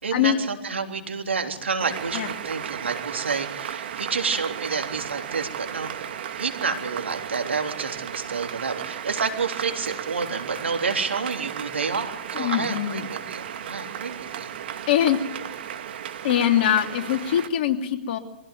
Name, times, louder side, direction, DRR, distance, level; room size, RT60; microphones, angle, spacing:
voice 1, 0.0-14.5, right 5 dB, 85° right, 4 dB, 3.6 m, -29 dB
sound 1, 1.8-17.5, right 9 dB, 60° right, 2.2 m, -35 dB
voice 2, 12.3-13.0 14.9-15.2 16.2-18.2, left 10 dB, 55° left, 4 dB, 2.8 m, -22 dB
24.0 x 16.0 x 9.4 m, 0.98 s
hypercardioid pair, 120°, 6 cm